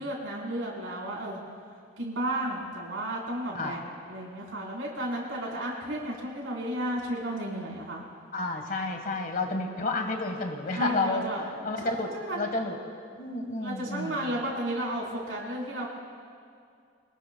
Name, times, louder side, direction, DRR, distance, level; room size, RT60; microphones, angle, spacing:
voice 1, 0.0-1.4 2.0-8.0 10.7-11.4 11.8-12.5 13.6-15.9, right 1 dB, 85° right, -3 dB, 4.3 m, -33 dB
voice 2, 8.3-12.8 13.2-14.3, left 2 dB, 45° left, 4 dB, 1.5 m, -31 dB
25.5 x 19.0 x 2.3 m, 2.3 s
head